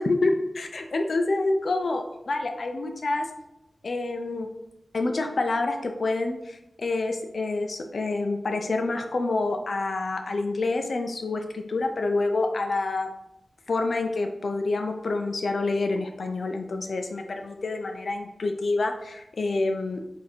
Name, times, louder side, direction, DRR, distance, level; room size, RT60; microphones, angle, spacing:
voice 1, 0.0-3.3 3.8-4.5 4.9-13.1 13.7-20.1, left 2 dB, 65° left, 4 dB, 0.4 m, -27 dB
4.0 x 2.6 x 4.3 m, 0.88 s
wide cardioid pair, 95°, 0 cm